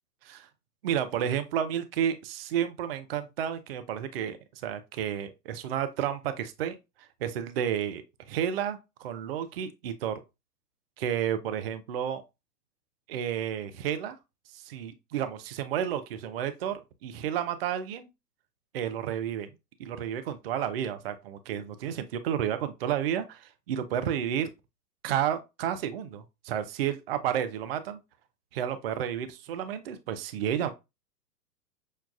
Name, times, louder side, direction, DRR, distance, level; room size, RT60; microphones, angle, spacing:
voice 1, 0.8-4.4 4.6-6.8 7.2-10.2 11.0-12.2 13.1-14.2 14.5-18.1 18.7-19.5 19.8-24.5 25.0-28.0 28.5-30.7, right 9 dB, 40° right, 0.5 m, -31 dB
6.3 x 2.3 x 2.4 m
figure-of-eight pair, 110°, 49 cm